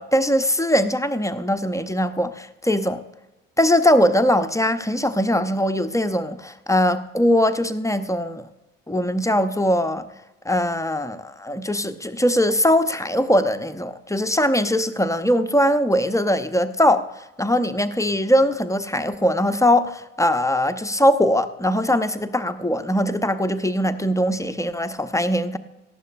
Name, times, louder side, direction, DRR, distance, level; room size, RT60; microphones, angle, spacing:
voice 1, 0.0-3.0 3.6-8.4 8.9-10.1 10.4-17.1 17.4-25.6, equal, 10° left, 10 dB, 0.8 m, -21 dB
18.5 x 14.0 x 2.6 m, 0.99 s
figure-of-eight pair, 45°, 38 cm